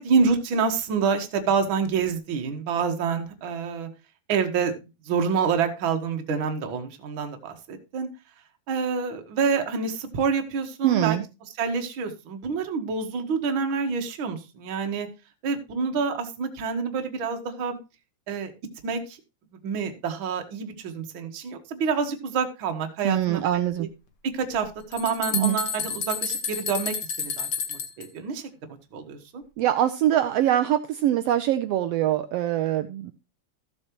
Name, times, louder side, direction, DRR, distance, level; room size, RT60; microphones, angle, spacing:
voice 1, 0.0-3.9 4.3-4.7 5.1-8.1 8.7-11.2 11.6-15.1 15.4-17.8 18.3-18.5 18.8-19.2 19.6-23.9 24.3-28.5 28.9-29.4, right 5 dB, 50° right, 6 dB, 1.8 m, -27 dB
voice 2, 10.8-11.2 23.0-23.9 25.3-25.6 29.6-33.1, right 12 dB, 80° right, 10 dB, 1.4 m, -23 dB
sound 1, 24.5-28.1, left 6 dB, 50° left, 1.3 m, -30 dB
14.5 x 7.4 x 3.0 m, 0.28 s
omnidirectional pair, 3.4 m